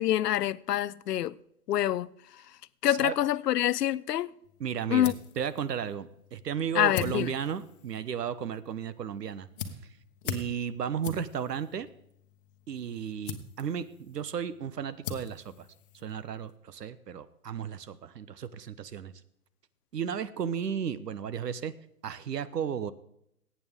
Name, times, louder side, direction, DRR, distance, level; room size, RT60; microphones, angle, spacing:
voice 1, 0.0-1.3 1.7-2.1 2.8-4.3 4.9-5.1 6.8-7.3, left 12 dB, 75° left, 0.6 m, -26 dB
voice 2, 2.8-3.2 4.6-9.5 10.2-11.9 12.7-15.7 16.0-19.1 19.9-21.7 22.0-22.9, right 8 dB, 75° right, 1.1 m, -34 dB
sound 1, 4.4-16.6, left 7 dB, 35° left, 1.1 m, -44 dB
18.0 x 8.8 x 3.6 m
hypercardioid pair, 155°, 48 cm